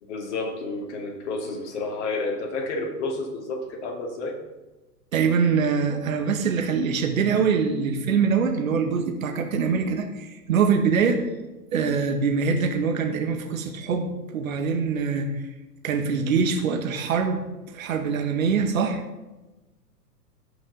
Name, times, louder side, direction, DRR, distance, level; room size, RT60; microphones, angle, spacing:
voice 1, 0.0-4.4, left 3 dB, 45° left, 2 dB, 2.3 m, -30 dB
voice 2, 5.1-11.2 11.7-15.3 15.8-17.4 17.7-19.0, right 5 dB, 55° right, 5 dB, 1.6 m, -24 dB
16.5 x 5.9 x 3.9 m, 1.1 s
figure-of-eight pair, 105°, 48 cm